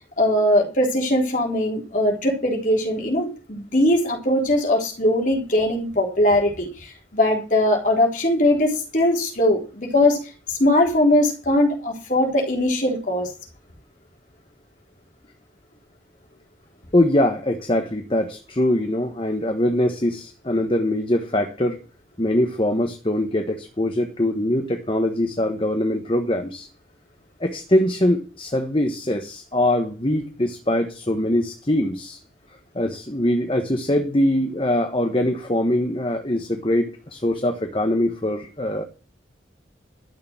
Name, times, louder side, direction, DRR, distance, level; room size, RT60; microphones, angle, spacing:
voice 1, 0.2-10.2 10.5-13.3, left 1 dB, 45° left, 0 dB, 3.8 m, -20 dB
voice 2, 16.9-21.8 22.2-26.7 27.4-32.2 32.7-38.8, left 1 dB, 30° left, 5 dB, 1.2 m, -22 dB
12.5 x 6.8 x 8.9 m, 0.36 s
head